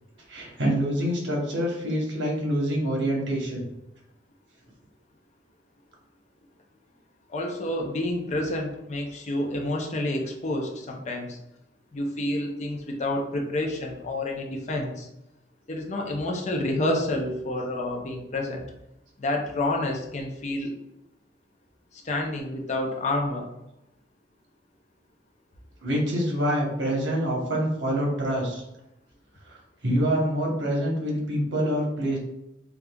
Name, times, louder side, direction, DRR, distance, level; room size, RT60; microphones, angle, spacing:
voice 1, 0.3-3.6 25.8-28.6 29.5-32.2, equal, 70° right, -2 dB, 1.0 m, -26 dB
voice 2, 7.3-11.4 11.9-15.1 15.7-18.6 19.2-20.7 22.0-23.5, left 1 dB, 40° left, 1 dB, 0.5 m, -29 dB
5.1 x 2.3 x 2.3 m, 0.88 s
head